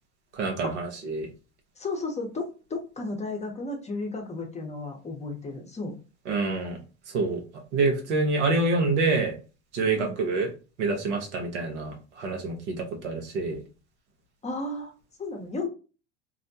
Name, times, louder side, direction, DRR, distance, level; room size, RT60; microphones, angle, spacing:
voice 1, 0.4-1.3 6.3-6.8 7.1-7.4 7.7-9.3 9.7-10.5 10.8-13.6, right 3 dB, 80° right, 2 dB, 0.9 m, -26 dB
voice 2, 1.8-6.0 10.0-10.1 14.4-14.9 15.2-15.7, left 3 dB, 20° left, 2 dB, 0.7 m, -33 dB
2.6 x 2.1 x 2.6 m, 0.33 s
hypercardioid pair, 80°, 34 cm